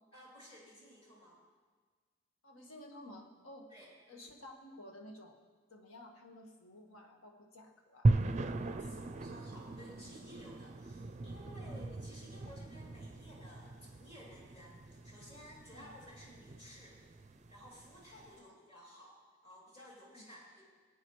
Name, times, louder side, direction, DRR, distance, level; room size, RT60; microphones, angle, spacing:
voice 1, 0.1-1.4 3.7-3.9 8.8-17.0 17.5-20.6, equal, 30° left, -5 dB, 3.0 m, -55 dB
voice 2, 2.4-3.7 4.1-5.3 5.7-8.2 8.7-8.9 11.7-11.8 15.7-15.9 20.1-20.2, left 1 dB, 75° left, 2 dB, 1.6 m, -53 dB
sound 1, 8.0-18.3, right 2 dB, 35° right, 0.5 m, -38 dB
21.0 x 9.0 x 3.2 m, 1.5 s
head